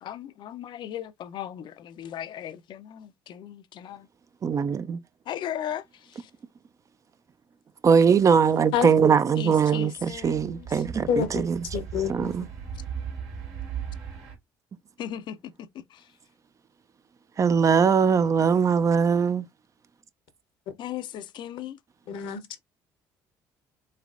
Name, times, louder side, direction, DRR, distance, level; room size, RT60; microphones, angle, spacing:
voice 1, 0.0-4.1 5.3-6.3 9.4-10.8 15.0-16.1 20.8-21.8, left 10 dB, 60° left, 0.4 m, -37 dB
voice 2, 4.4-5.0 7.8-11.6 12.1-12.5 17.4-19.5, right 6 dB, 35° right, 0.4 m, -21 dB
sound 1, 10.0-14.3, right 7 dB, 80° right, 1.6 m, -37 dB
voice 3, 11.1-11.5 11.7-12.3 22.1-22.6, left 7 dB, 75° left, 0.8 m, -27 dB
3.3 x 3.2 x 2.4 m
supercardioid pair, 75°, 9 cm